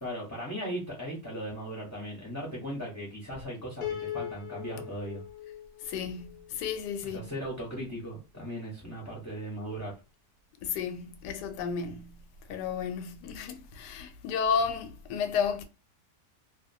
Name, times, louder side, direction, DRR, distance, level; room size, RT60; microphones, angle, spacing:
voice 1, 0.0-5.2 7.0-9.9, equal, 20° left, 0.5 m, -37 dB
Piano, 3.8-7.0, left 11 dB, 65° left, 1.0 m, -40 dB
voice 2, 5.8-7.3 10.6-12.2 12.5-15.6, left 6 dB, 85° left, 1.2 m, -32 dB
2.8 x 2.4 x 2.7 m
omnidirectional pair, 1.8 m